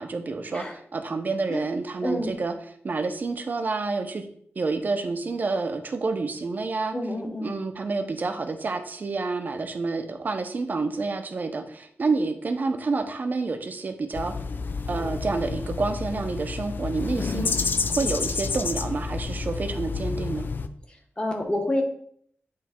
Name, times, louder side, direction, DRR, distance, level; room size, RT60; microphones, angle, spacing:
voice 1, 0.0-2.5 2.8-4.3 4.6-6.9 7.4-14.3 14.9-17.5 18.0-20.5, right 3 dB, 40° right, 7 dB, 0.6 m, -28 dB
voice 2, 2.0-2.4 6.9-7.5 20.9-21.8, left 1 dB, 20° left, 2 dB, 1.1 m, -28 dB
sound 1, 14.1-20.7, left 4 dB, 50° left, 0.4 m, -29 dB
9.4 x 3.2 x 4.3 m, 0.63 s
wide cardioid pair, 180°, 4 cm